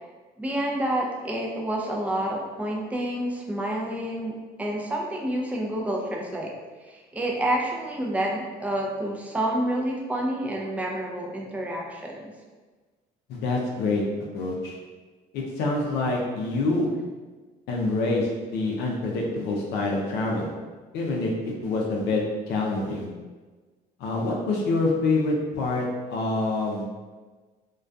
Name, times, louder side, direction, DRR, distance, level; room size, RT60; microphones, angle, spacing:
voice 1, 0.4-4.3 4.6-6.5 6.8-12.2, right 1 dB, 10° right, -2 dB, 0.4 m, -28 dB
voice 2, 13.3-14.0 14.3-14.8 15.3-16.9 17.7-20.5 20.9-23.1 24.0-26.8, left 2 dB, 80° left, -2 dB, 0.4 m, -26 dB
2.3 x 2.2 x 2.5 m, 1.3 s
cardioid pair, 110°, 17 cm